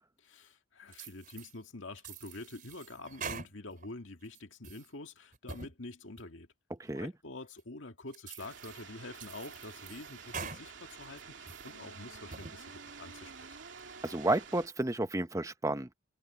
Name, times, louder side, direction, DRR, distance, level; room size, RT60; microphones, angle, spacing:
voice 1, 0.2-6.5 6.9-13.6, left 2 dB, 75° left, 2.1 m, -47 dB
sound 1, 0.9-1.5 2.0-3.9 4.3-4.9 5.3-5.7 6.2-6.3 6.9-7.0 7.6-7.7 8.1-8.8 9.2-10.6 11.0-11.7 12.1-12.6, right 5 dB, 45° right, 4.0 m, -45 dB
voice 2, 6.8-7.1 14.0-15.9, right 2 dB, 15° right, 0.7 m, -31 dB
sound 2, 8.4-14.7, right 5 dB, 70° right, 2.7 m, -49 dB
head